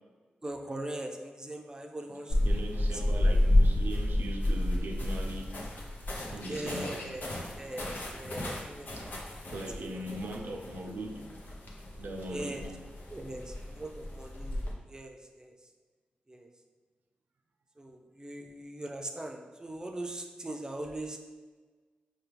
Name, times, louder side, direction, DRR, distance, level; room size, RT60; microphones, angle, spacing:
voice 1, 0.4-2.4 2.9-3.0 6.5-7.3 7.5-10.2 12.3-12.7 13.1-15.5 16.3-16.5 17.8-21.2, right 1 dB, 20° right, 0.5 m, -41 dB
sound 1, 2.3-14.7, left 1 dB, 70° left, 0.7 m, -31 dB
voice 2, 2.4-5.6 6.3-7.1 9.0-9.1 9.5-11.3 12.0-12.7, right 1 dB, 75° right, 0.4 m, -39 dB
4.5 x 2.2 x 3.3 m
cardioid pair, 60°, 3 cm